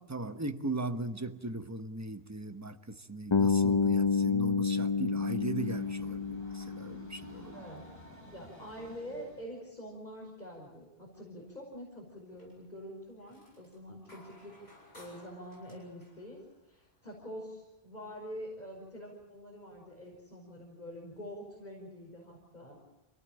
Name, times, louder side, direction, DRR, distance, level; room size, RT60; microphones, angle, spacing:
voice 1, 0.1-7.7, right 2 dB, 15° right, 8 dB, 1.1 m, -38 dB
Bass guitar, 3.3-7.4, left 5 dB, 30° left, 0.9 m, -29 dB
Train, 4.7-9.6, equal, 70° left, 7.0 m, -55 dB
voice 2, 7.5-7.8 8.2-16.4 16.6-22.8, equal, 45° left, -2 dB, 5.5 m, -46 dB
sound 1, 12.3-12.7 13.0-17.2 18.8-18.9 19.4-20.1, left 1 dB, 85° left, 8.4 m, -59 dB
27.0 x 18.5 x 8.9 m, 0.99 s
omnidirectional pair, 1.1 m